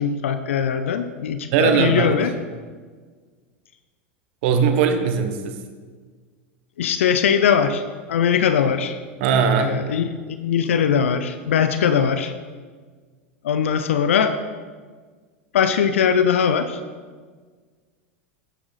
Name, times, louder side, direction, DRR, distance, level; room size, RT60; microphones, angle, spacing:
voice 1, 0.0-2.3 6.8-7.8 8.1-9.0 9.6-12.3 13.4-14.4 15.5-16.8, left 7 dB, 75° left, 10 dB, 0.6 m, -20 dB
voice 2, 1.5-2.1 4.4-5.6 9.2-9.7, right 6 dB, 65° right, 7 dB, 1.2 m, -19 dB
11.0 x 8.7 x 4.1 m, 1.5 s
hypercardioid pair, 90°, 7 cm